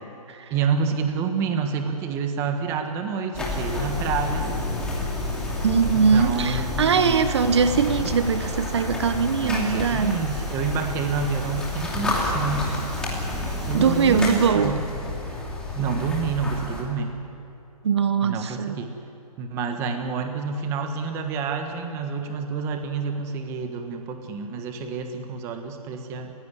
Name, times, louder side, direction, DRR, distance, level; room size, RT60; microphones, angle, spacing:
voice 1, 0.5-4.6 5.8-7.3 9.4-12.7 13.6-14.8 15.7-17.2 18.2-18.9 19.4-26.3, right 5 dB, 15° right, 6 dB, 1.4 m, -28 dB
sound 1, 3.3-16.8, left 2 dB, 5° left, 2.8 m, -29 dB
voice 2, 5.6-10.2 13.7-14.8 17.8-18.8, right 6 dB, 45° right, 10 dB, 1.2 m, -21 dB
28.5 x 16.0 x 9.9 m, 2.8 s
hypercardioid pair, 165°, 19 cm